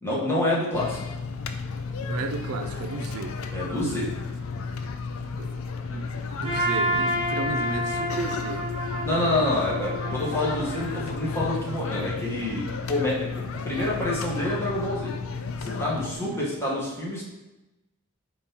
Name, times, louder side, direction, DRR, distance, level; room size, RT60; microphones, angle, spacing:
voice 1, 0.0-1.0 3.5-4.1 9.0-15.1 15.6-17.2, left 1 dB, 10° left, -6 dB, 1.1 m, -27 dB
sound 1, 0.7-16.2, left 4 dB, 70° left, 0.4 m, -33 dB
voice 2, 2.0-3.4 5.4-5.6 5.9-8.7 9.1-9.4 16.2-16.5, right 4 dB, 85° right, 5 dB, 0.4 m, -34 dB
Trumpet, 6.4-11.5, equal, 30° right, 1.3 m, -30 dB
4.3 x 3.6 x 2.8 m, 1.0 s
head